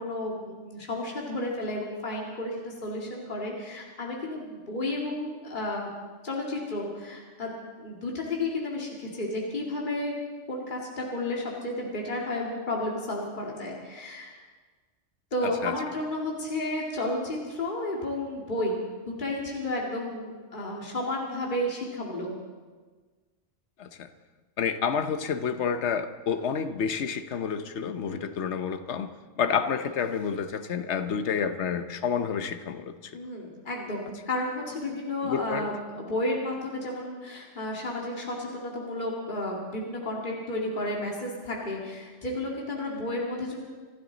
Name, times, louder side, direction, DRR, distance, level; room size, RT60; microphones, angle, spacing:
voice 1, 0.0-5.9 6.2-10.2 10.5-14.3 15.3-22.3 28.0-28.3 33.1-43.6, left 1 dB, 40° left, -2 dB, 2.4 m, -32 dB
voice 2, 15.4-15.7 23.8-24.1 24.6-33.2 35.2-35.7, left 7 dB, 65° left, 9 dB, 1.2 m, -29 dB
26.5 x 12.5 x 4.0 m, 1.4 s
omnidirectional pair, 1.3 m